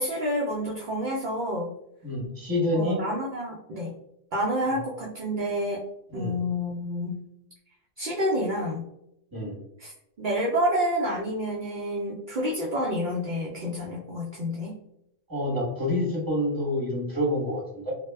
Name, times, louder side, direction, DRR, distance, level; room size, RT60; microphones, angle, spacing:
voice 1, 0.0-1.7 2.7-3.9 4.3-5.8 6.1-7.2 8.0-8.8 9.8-9.9 10.2-14.8, equal, 60° right, -3 dB, 0.5 m, -28 dB
voice 2, 2.0-3.0 6.1-6.3 9.3-9.5 15.3-17.9, left 1 dB, 20° right, -4 dB, 0.9 m, -27 dB
2.2 x 2.1 x 3.2 m, 0.78 s
omnidirectional pair, 1.3 m